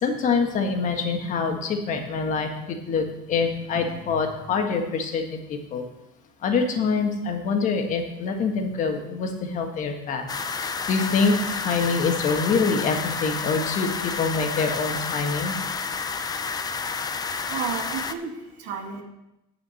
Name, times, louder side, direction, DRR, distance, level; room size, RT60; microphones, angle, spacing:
voice 1, 0.0-5.8 6.4-10.3 10.5-15.6, left 4 dB, 45° left, 4 dB, 1.6 m, -25 dB
sound 1, 10.3-18.1, left 5 dB, 20° left, 0.5 m, -30 dB
voice 2, 17.3-19.0, right 6 dB, 70° right, 1 dB, 2.3 m, -32 dB
10.0 x 5.0 x 7.7 m, 0.91 s
cardioid pair, 135°, 18 cm